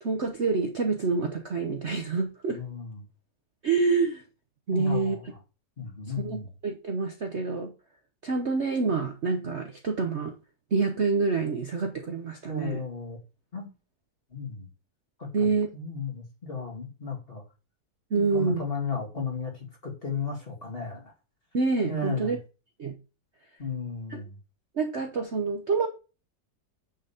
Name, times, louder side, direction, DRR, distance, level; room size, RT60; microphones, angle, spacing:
voice 1, 0.0-2.6 3.6-4.2 4.7-5.2 6.2-7.7 8.2-10.3 10.7-12.8 15.3-15.7 18.1-18.6 21.5-22.4 22.8-22.9 24.1-24.2 24.8-25.9, right 4 dB, 45° right, 1.0 m, -27 dB
voice 2, 2.5-3.1 4.7-5.4 5.8-6.5 12.5-13.2 13.5-13.7 14.3-14.7 15.2-15.3 15.7-17.4 18.1-21.1 21.9-22.4 23.6-24.4, left 4 dB, 30° left, 2.5 m, -34 dB
8.9 x 4.0 x 6.9 m
omnidirectional pair, 2.0 m